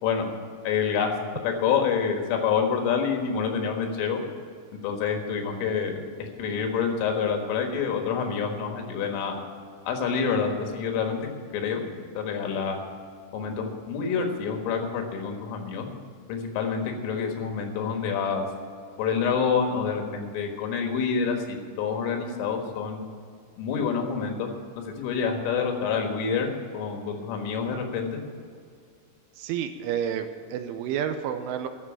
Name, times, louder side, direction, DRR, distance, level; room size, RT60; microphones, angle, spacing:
voice 1, 0.6-1.1 1.4-4.2 4.8-9.3 9.9-11.2 11.5-11.8 12.2-12.8 13.3-15.9 16.3-18.4 19.0-23.0 23.6-28.2, left 6 dB, 80° left, 3 dB, 4.0 m, -27 dB
voice 2, 29.4-31.7, right 9 dB, 80° right, 8 dB, 3.1 m, -30 dB
12.5 x 7.1 x 10.0 m, 2.2 s
omnidirectional pair, 5.7 m